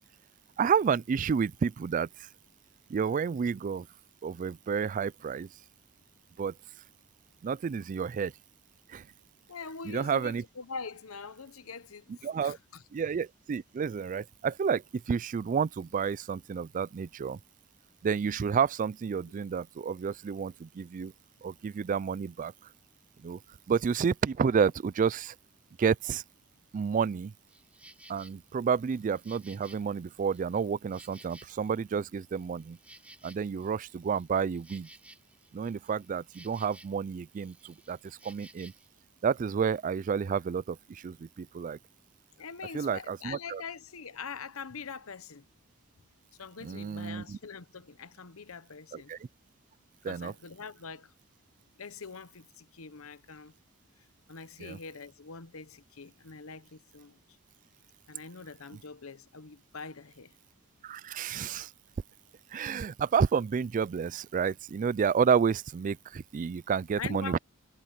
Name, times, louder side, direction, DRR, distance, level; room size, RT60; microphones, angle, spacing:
voice 1, 0.6-2.3 2.9-3.9 4.2-5.5 6.4-6.5 7.4-8.3 8.9-9.1 9.8-10.4 12.1-12.6 12.9-17.4 18.0-21.1 21.4-22.5 23.2-23.4 23.7-25.3 25.8-26.2 26.7-27.3 28.1-32.8 33.2-34.9 35.5-38.7 39.2-41.8 42.7-43.6 46.6-47.4 48.9-49.3 50.0-50.3 54.6-54.8 60.8-61.7 62.5-67.4, right 6 dB, 40° right, 0.3 m, -30 dB
voice 2, 9.5-12.8 42.4-45.4 46.4-49.1 50.0-51.1 51.8-53.5 54.3-57.2 58.1-60.3 67.0-67.4, left 5 dB, 80° left, 1.0 m, -43 dB
Insect, 27.5-28.3 28.8-31.9 32.2-37.1 37.3-38.9, right 1 dB, 5° right, 3.6 m, -56 dB
head